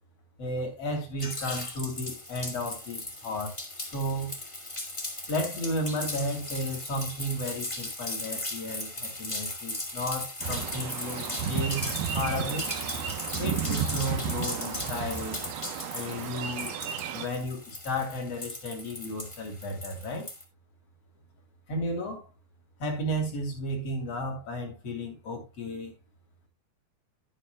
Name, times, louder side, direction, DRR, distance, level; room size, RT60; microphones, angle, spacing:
voice 1, 0.4-4.4 5.3-11.9 12.1-12.7 13.4-15.4 15.9-16.8 17.1-20.3 21.7-22.2 22.8-25.9, equal, 40° left, 3.9 m, -33 dB
sound 1, 1.2-20.4, left 2 dB, 20° left, 0.7 m, -37 dB
sound 2, 10.4-17.3, right 8 dB, 75° right, 2.9 m, -33 dB
11.0 x 10.5 x 2.3 m
omnidirectional pair, 4.5 m